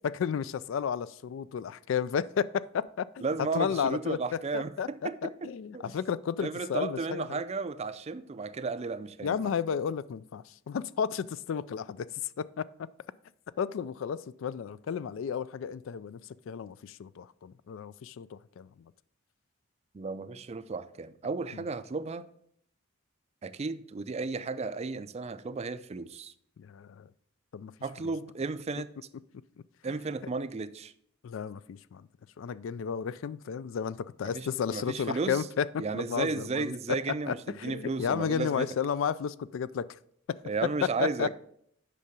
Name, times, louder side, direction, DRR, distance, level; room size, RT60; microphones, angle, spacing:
voice 1, 0.2-3.2 3.5-4.2 4.5-7.4 9.2-12.1 12.4-12.7 13.6-16.2 16.5-18.7 21.5-21.6 26.6-27.1 27.5-27.7 28.0-28.1 31.2-32.1 32.4-39.9 40.3-40.4 40.8-41.3, left 7 dB, 70° left, 0.3 m, -32 dB
voice 2, 3.2-5.5 5.7-5.8 6.4-9.4 19.9-22.3 23.4-26.3 27.8-28.9 29.8-30.9 34.2-35.4 35.8-38.7 40.4-41.3, right 4 dB, 30° right, 0.4 m, -34 dB
8.4 x 5.6 x 5.2 m
head